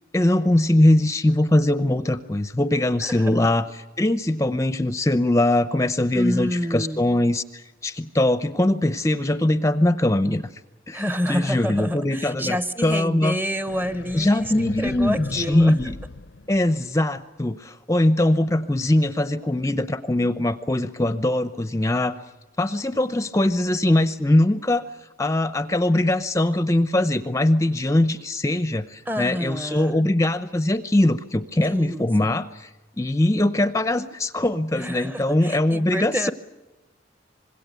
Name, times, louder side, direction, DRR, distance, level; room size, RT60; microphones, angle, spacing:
voice 1, 0.1-10.4 10.9-11.0 11.3-12.6 12.8-13.4 14.1-15.9 16.5-22.1 22.6-24.8 25.2-32.7 33.0-36.3, left 1 dB, 15° left, 12 dB, 0.7 m, -21 dB
voice 2, 3.0-3.4 6.1-7.0 10.9-15.7 29.1-30.0 31.6-32.3 34.7-36.3, equal, 10° right, 13 dB, 0.9 m, -28 dB
sound 1, 13.7-17.1, left 3 dB, 65° left, 0.7 m, -37 dB
26.0 x 21.5 x 8.2 m, 1.1 s
head